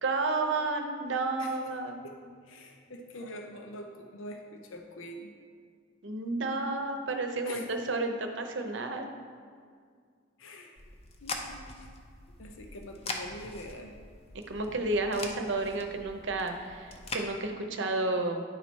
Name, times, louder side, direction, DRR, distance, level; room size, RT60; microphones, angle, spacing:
voice 1, 0.0-2.0 6.0-9.1 14.5-18.4, right 2 dB, 65° right, 5 dB, 0.7 m, -31 dB
voice 2, 2.4-5.3 7.4-7.7 10.4-10.8 11.2-11.9 12.4-13.9, left 1 dB, 90° left, 3 dB, 0.6 m, -44 dB
sound 1, 10.8-17.3, left 2 dB, 30° left, 0.6 m, -42 dB
9.9 x 4.1 x 4.5 m, 2.1 s
head